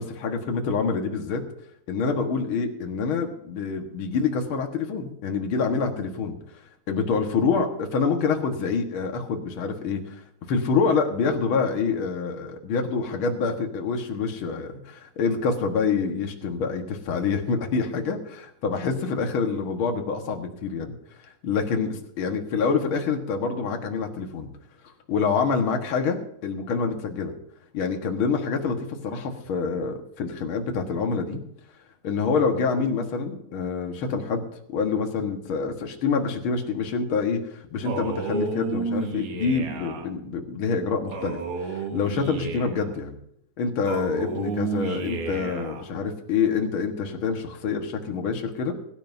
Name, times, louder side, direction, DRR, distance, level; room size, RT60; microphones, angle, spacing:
voice 1, 0.0-1.4 1.9-6.4 6.9-10.2 10.5-20.9 21.4-24.5 25.1-27.3 27.7-31.4 32.0-34.5 34.7-43.2 43.6-48.7, left 5 dB, 75° left, 3 dB, 1.2 m, -26 dB
Male speech man speaking, 37.8-40.1 41.1-42.9 43.8-45.8, right 4 dB, 70° right, 3.4 m, -31 dB
22.5 x 11.5 x 2.7 m, 0.73 s
omnidirectional pair, 4.7 m